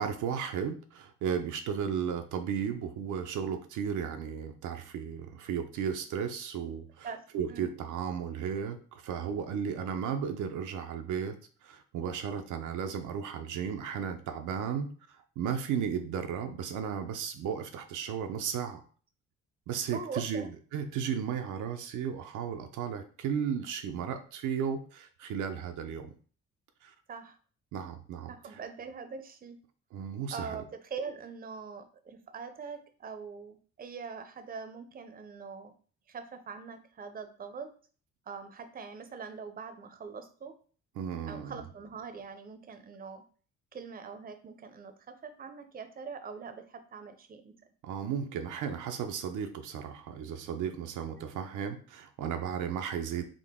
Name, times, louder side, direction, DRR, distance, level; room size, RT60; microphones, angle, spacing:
voice 1, 0.0-7.1 7.3-11.4 11.6-18.8 19.7-26.1 26.8-26.9 27.7-28.6 29.9-30.6 41.0-41.6 47.8-53.2, right 7 dB, 80° right, 6 dB, 0.5 m, -34 dB
voice 2, 19.9-20.5 27.1-27.4 28.3-29.6 30.3-35.7 36.1-37.7 38.3-40.5 41.3-43.2 43.7-47.5, right 5 dB, 30° right, 8 dB, 0.5 m, -43 dB
3.7 x 2.1 x 3.5 m, 0.41 s
cardioid pair, 90°, 30 cm